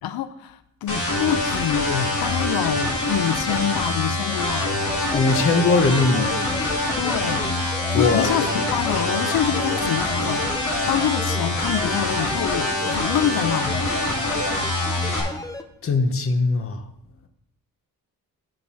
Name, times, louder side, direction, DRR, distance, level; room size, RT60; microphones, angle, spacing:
voice 1, 0.0-4.7 7.0-7.4 7.9-13.8, left 10 dB, 85° left, 0.5 m, -26 dB
sound 1, 0.9-15.2, left 2 dB, 55° left, 2.8 m, -25 dB
sound 2, 4.3-15.6, left 2 dB, 10° left, 0.4 m, -35 dB
voice 2, 5.1-6.3 7.9-8.4 15.8-16.8, left 3 dB, 40° left, 0.8 m, -20 dB
7.1 x 5.9 x 6.0 m
wide cardioid pair, 165°, 36 cm